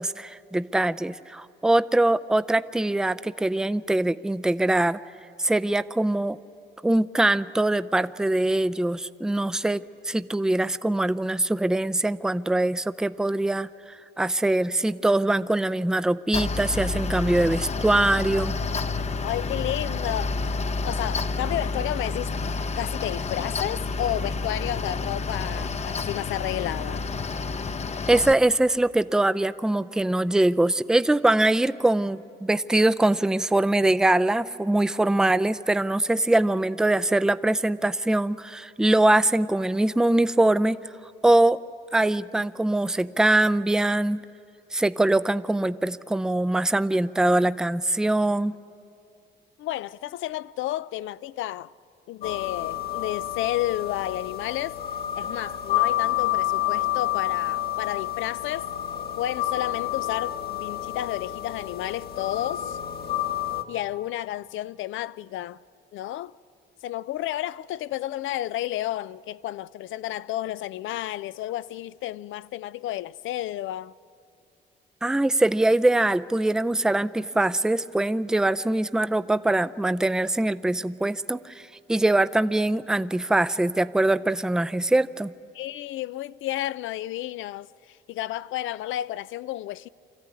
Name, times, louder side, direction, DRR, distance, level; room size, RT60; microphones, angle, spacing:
voice 1, 0.0-5.0 5.4-6.4 6.8-18.6 28.1-40.8 41.2-41.6 41.9-44.2 44.7-48.6 75.0-85.3, right 2 dB, 5° right, 0.4 m, -23 dB
Mechanical fan, 16.3-28.3, left 3 dB, 35° left, 0.7 m, -29 dB
voice 2, 19.2-20.4 20.8-22.4 22.8-27.1 49.6-51.7 52.1-54.8 55.1-58.7 59.2-62.8 63.7-65.6 65.9-66.3 66.8-73.9 85.5-89.9, left 14 dB, 80° left, 0.5 m, -31 dB
sound 1, 52.2-63.6, left 13 dB, 55° left, 1.3 m, -29 dB
25.5 x 14.0 x 9.6 m
cardioid pair, 90°, 20 cm